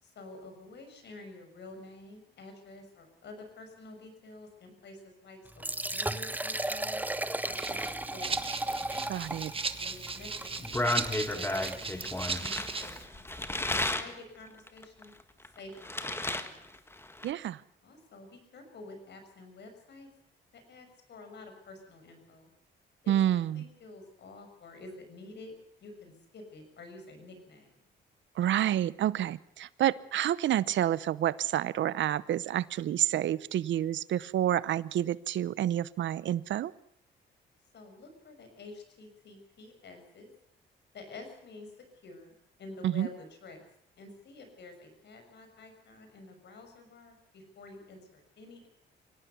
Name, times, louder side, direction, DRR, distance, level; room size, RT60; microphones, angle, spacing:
voice 1, 0.0-7.1 7.4-8.6 9.7-10.9 11.3-13.3 13.5-15.1 15.4-16.7 17.8-20.1 20.5-22.5 23.0-27.7 37.7-40.3 40.9-41.7 42.0-43.7 44.0-48.7, left 2 dB, 60° left, 6 dB, 6.5 m, -49 dB
Liquid, 5.5-12.3, right 1 dB, 10° right, 1.0 m, -36 dB
Rattle (instrument), 7.5-13.0, right 4 dB, 25° right, 1.6 m, -37 dB
voice 2, 9.1-9.5 17.2-17.6 23.1-23.6 28.4-36.7 42.8-43.1, right 11 dB, 70° right, 19 dB, 0.8 m, -29 dB
sound 1, 10.4-14.1 14.7-16.5 16.7-17.3, left 1 dB, 10° left, 1.7 m, -33 dB
25.0 x 17.5 x 6.9 m, 0.69 s
cardioid pair, 90°, 20 cm